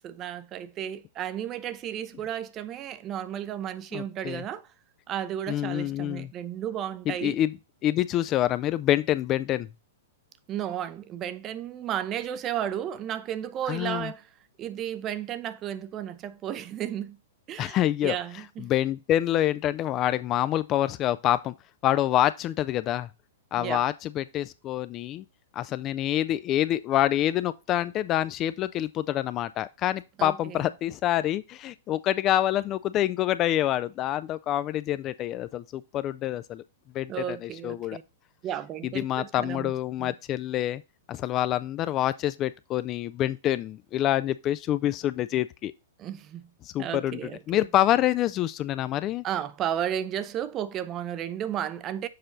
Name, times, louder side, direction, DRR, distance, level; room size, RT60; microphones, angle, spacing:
voice 1, 0.0-4.7 5.1-7.4 10.5-14.3 14.6-17.2 17.5-18.7 23.6-23.8 30.2-30.6 37.1-38.0 38.4-39.7 40.0-40.1 46.0-46.5 46.8-47.7 49.2-52.1, right 10 dB, 30° right, 0.5 m, -33 dB
voice 2, 3.9-4.4 5.5-6.3 7.1-7.5 7.8-9.7 13.7-14.1 17.6-18.2 18.6-21.5 21.8-23.1 23.5-25.2 25.5-36.6 36.9-38.0 38.8-40.8 41.1-45.7 46.6-47.2 47.5-49.2, left 13 dB, 30° left, 0.3 m, -26 dB
6.7 x 4.2 x 3.9 m
figure-of-eight pair, 105°, 0 cm